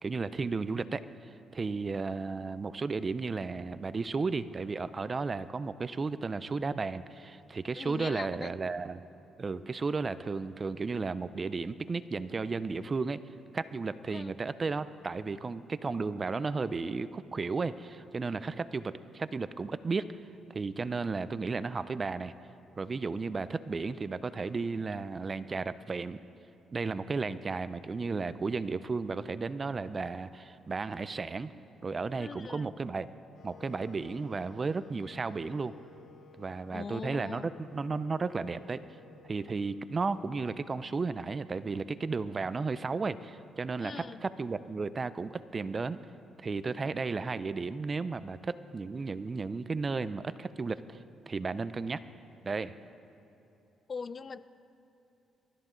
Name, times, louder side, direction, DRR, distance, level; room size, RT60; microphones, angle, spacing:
voice 1, 0.0-9.0 9.4-13.2 13.5-20.1 20.5-22.3 22.8-26.2 26.7-31.5 31.8-33.1 33.4-35.7 36.4-38.8 39.2-46.0 46.4-51.0 51.3-52.0 52.4-52.7, right 4 dB, 35° right, 14 dB, 0.5 m, -34 dB
voice 2, 7.8-8.5 14.1-14.3 32.2-32.7 36.7-37.5 43.8-44.2 53.9-54.5, left 5 dB, 40° left, 15 dB, 0.5 m, -41 dB
Wind instrument woodwind instrument, 33.3-41.3, left 5 dB, 65° left, 1.0 m, -57 dB
23.5 x 13.0 x 3.9 m, 3.0 s
cardioid pair, 90°, 0 cm